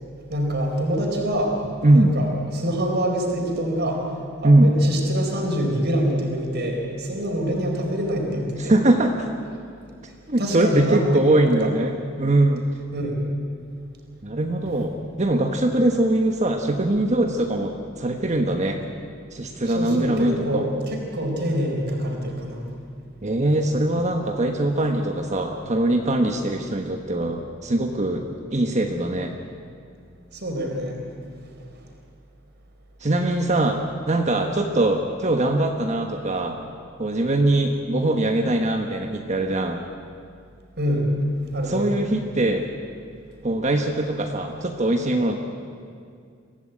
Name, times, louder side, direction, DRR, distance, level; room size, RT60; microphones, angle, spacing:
voice 1, 0.3-1.6 1.9-4.1 4.4-8.8 10.3-11.0 11.3-11.5 12.9-13.2 19.7-22.7 30.3-31.1 40.8-41.2 41.5-41.9, equal, 55° right, 1 dB, 4.2 m, -25 dB
voice 2, 1.8-2.2 4.4-4.7 8.6-9.3 10.3-11.9 12.2-12.6 14.2-18.8 19.3-20.6 23.2-28.2 28.5-29.3 33.0-36.6 37.0-39.8 41.7-42.7 43.4-45.4, right 1 dB, 35° right, 3 dB, 1.3 m, -22 dB
24.5 x 15.5 x 8.9 m, 2.3 s
head